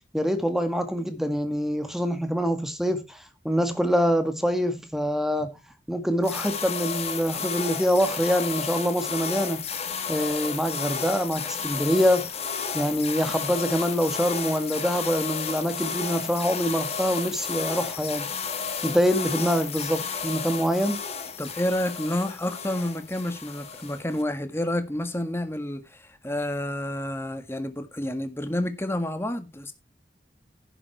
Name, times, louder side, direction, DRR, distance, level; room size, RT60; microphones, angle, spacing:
voice 1, 0.1-3.2 3.4-5.6 5.9-9.7 10.1-12.3 12.7-18.3 18.8-21.0, equal, ahead, 1.8 m, -25 dB
sound 1, 6.2-24.2, left 6 dB, 35° left, 1.8 m, -32 dB
voice 2, 21.4-29.7, left 1 dB, 15° left, 1.7 m, -29 dB
11.0 x 7.4 x 4.7 m
head